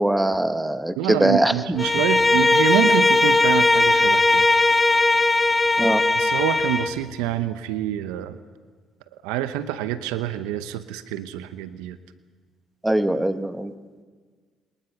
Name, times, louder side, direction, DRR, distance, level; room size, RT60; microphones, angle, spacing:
voice 1, 0.0-1.5 5.8-6.0 12.8-13.7, right 1 dB, 10° right, 10 dB, 1.4 m, -21 dB
voice 2, 1.0-4.4 6.2-8.4 9.2-12.0, right 11 dB, 90° right, 12 dB, 0.8 m, -26 dB
Bowed string instrument, 1.8-7.0, left 2 dB, 20° left, 1.1 m, -18 dB
25.5 x 20.5 x 5.8 m, 1.5 s
supercardioid pair, 65°, 0 cm